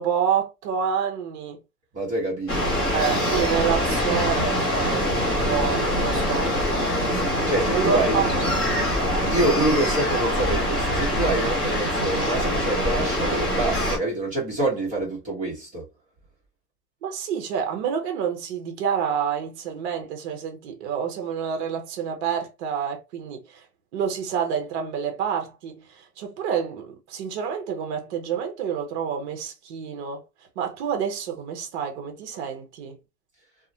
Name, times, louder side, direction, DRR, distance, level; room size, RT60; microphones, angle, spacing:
voice 1, 0.0-1.6 2.9-5.1 5.4-6.6 7.7-8.3 17.0-23.7 23.9-30.2 30.6-33.0, right 7 dB, 45° right, 0.7 m, -28 dB
voice 2, 1.9-2.7 7.1-8.2 9.2-15.9, right 2 dB, 15° right, 0.9 m, -26 dB
sound 1, 2.5-14.0, equal, 10° left, 0.5 m, -24 dB
2.4 x 2.1 x 2.7 m
hypercardioid pair, 150°, 48 cm